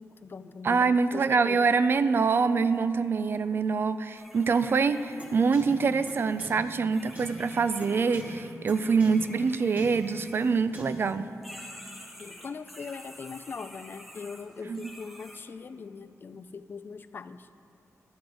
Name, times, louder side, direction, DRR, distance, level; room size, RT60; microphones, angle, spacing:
voice 1, 0.0-1.6 12.2-17.5, left 5 dB, 40° left, 12 dB, 0.3 m, -41 dB
voice 2, 0.6-11.3 14.7-14.8, right 5 dB, 45° right, 13 dB, 0.3 m, -25 dB
sound 1, 4.1-11.1 11.4-15.4, left 1 dB, ahead, 0.9 m, -49 dB
sound 2, 5.2-5.3 5.5-5.6 6.1-6.2 6.4-6.5 7.2-7.3 7.8-7.9 8.1-8.2 8.7-8.8 9.0-9.1 9.8-9.9 10.7-10.8, right 1 dB, 30° right, 1.4 m, -42 dB
12.0 x 7.8 x 4.7 m, 2.7 s
wide cardioid pair, 170°, 5 cm